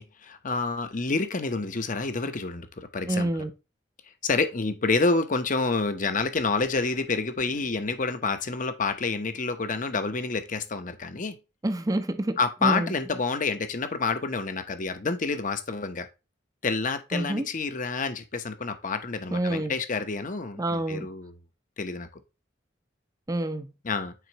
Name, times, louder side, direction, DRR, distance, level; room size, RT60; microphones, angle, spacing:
voice 1, 0.0-3.5 4.2-11.4 12.4-16.1 16.6-21.4 21.8-22.2 23.8-24.1, left 4 dB, 45° left, 0.8 m, -28 dB
voice 2, 3.1-3.5 11.6-12.9 17.1-17.5 19.3-19.7 20.6-21.1 23.3-23.7, right 1 dB, 20° right, 0.6 m, -27 dB
9.3 x 4.4 x 2.9 m
head